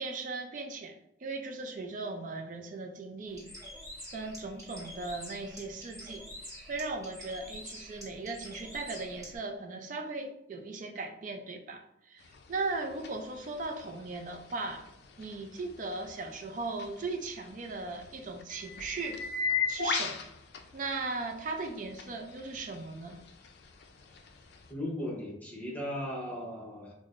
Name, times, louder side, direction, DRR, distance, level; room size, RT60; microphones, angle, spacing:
voice 1, 0.0-3.5 4.1-6.2 6.7-12.2 12.5-14.9 15.2-19.2 19.7-20.2 20.7-23.2, right 3 dB, 45° right, 4 dB, 0.4 m, -38 dB
Bird, 3.3-9.4, equal, 20° right, 1.2 m, -47 dB
sound 1, 12.2-24.7, left 5 dB, 60° left, 0.4 m, -40 dB
voice 2, 24.7-26.9, left 1 dB, 10° left, -3 dB, 0.8 m, -37 dB
6.0 x 2.0 x 2.4 m, 0.80 s
head